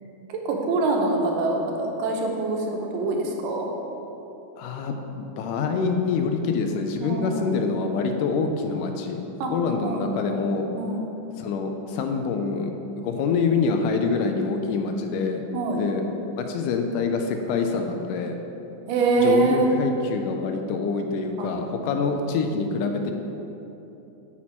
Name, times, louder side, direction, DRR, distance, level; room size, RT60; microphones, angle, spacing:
voice 1, 0.3-3.7 7.0-7.5 9.4-9.5 9.8-10.1 10.7-11.1 15.5-15.8 18.9-19.7 21.4-21.5, right 3 dB, 80° right, 1 dB, 2.5 m, -24 dB
voice 2, 4.6-10.7 11.4-12.7 13.0-15.4 15.8-16.0 16.4-18.4 19.2-23.1, left 4 dB, 80° left, 5 dB, 2.1 m, -26 dB
8.3 x 6.0 x 4.5 m, 3.0 s
omnidirectional pair, 3.8 m